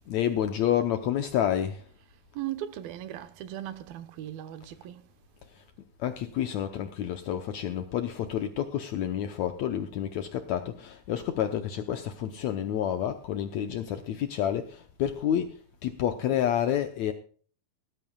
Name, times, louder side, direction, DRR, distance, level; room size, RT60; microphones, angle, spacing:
voice 1, 0.1-1.9 5.5-5.6 6.0-17.1, left 10 dB, 75° left, 1.7 m, -29 dB
voice 2, 2.3-5.0, right 12 dB, 85° right, 2.9 m, -38 dB
18.5 x 14.0 x 2.3 m
omnidirectional pair, 4.1 m